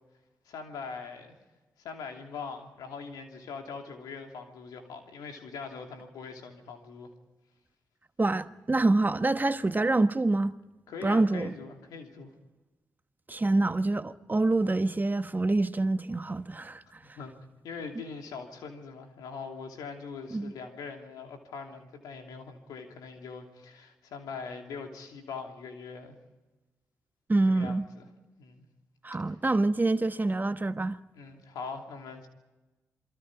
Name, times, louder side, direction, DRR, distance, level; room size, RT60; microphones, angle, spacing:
voice 1, 0.5-1.3 1.8-7.1 10.9-12.3 17.0-17.4 17.6-26.2 27.5-28.1 28.4-28.6 31.1-32.3, left 5 dB, 85° left, 3.0 m, -42 dB
voice 2, 8.2-10.5 11.0-11.5 13.3-16.8 20.3-20.5 27.3-27.8 29.0-31.0, right 2 dB, 30° right, 1.1 m, -26 dB
28.0 x 22.5 x 4.9 m
supercardioid pair, 45°, 6 cm